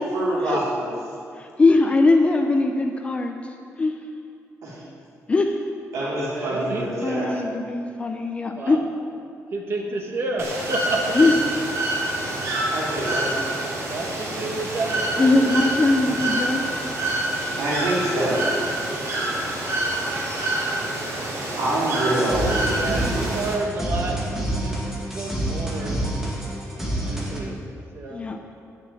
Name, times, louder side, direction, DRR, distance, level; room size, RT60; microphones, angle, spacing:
voice 1, 0.1-0.9 4.6-4.8 5.9-7.4 12.7-13.3 17.6-18.4 21.6-22.7, right 1 dB, 80° right, -7 dB, 3.6 m, -25 dB
voice 2, 1.4-3.4 3.8-4.0 5.3-5.6 7.0-8.8 11.1-11.3 15.2-16.8 23.0-23.3 28.1-28.4, left 3 dB, 20° left, 4 dB, 0.6 m, -21 dB
voice 3, 6.4-7.4 8.6-8.8 9.5-11.2 13.7-15.6 15.8-16.0 22.6-24.7 25.1-26.0 27.0-27.6 27.9-28.2, right 2 dB, 45° right, 0 dB, 1.5 m, -30 dB
Bird / Water, 10.4-23.5, right 1 dB, 60° right, 3.4 m, -27 dB
sound 1, 22.1-27.4, right 1 dB, 5° right, 1.8 m, -28 dB
11.0 x 7.0 x 8.9 m, 2.4 s
wide cardioid pair, 170°, 6 cm